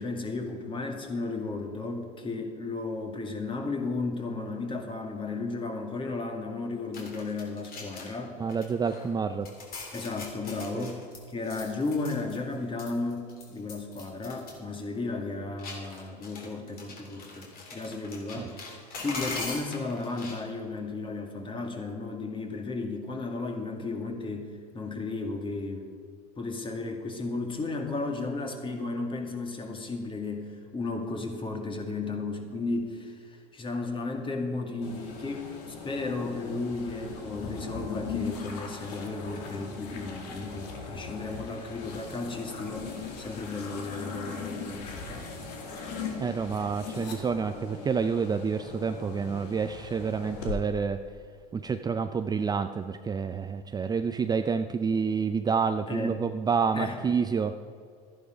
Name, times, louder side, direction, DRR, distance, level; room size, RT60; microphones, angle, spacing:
voice 1, 0.0-8.4 9.9-11.0 11.3-18.6 19.0-25.9 26.4-45.3 55.9-56.2 56.7-57.0, left 3 dB, 25° left, 3 dB, 2.2 m, -34 dB
sound 1, 6.9-8.2 8.5-9.1 9.4-12.5 12.8-14.5 14.8-14.9 15.6-20.4, left 3 dB, 45° left, 3.4 m, -41 dB
voice 2, 8.4-9.5 10.7-10.9 18.4-18.5 46.2-51.0 51.5-57.6, right 5 dB, 20° right, 8 dB, 0.5 m, -28 dB
sound 2, 34.8-50.6, left 5 dB, 80° left, 2.2 m, -39 dB
13.0 x 10.5 x 5.1 m, 2.2 s
supercardioid pair, 95°, 20 cm